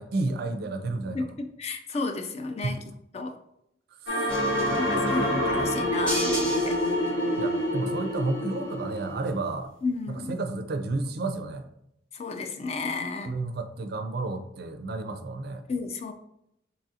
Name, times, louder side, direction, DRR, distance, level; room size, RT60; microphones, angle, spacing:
voice 1, 0.0-1.2 2.6-2.8 4.0-4.3 4.7-5.3 7.4-9.7 10.1-11.6 13.3-15.6, right 2 dB, 55° right, 7 dB, 0.4 m, -31 dB
voice 2, 1.1-2.8 3.1-3.4 4.8-6.8 9.8-10.3 12.1-13.3 15.7-16.1, left 3 dB, 35° left, 6 dB, 0.3 m, -32 dB
sound 1, 4.1-9.4, left 1 dB, 65° left, 0.7 m, -27 dB
sound 2, 4.3-7.3, equal, 5° left, 0.8 m, -31 dB
4.0 x 2.4 x 2.7 m, 0.78 s
head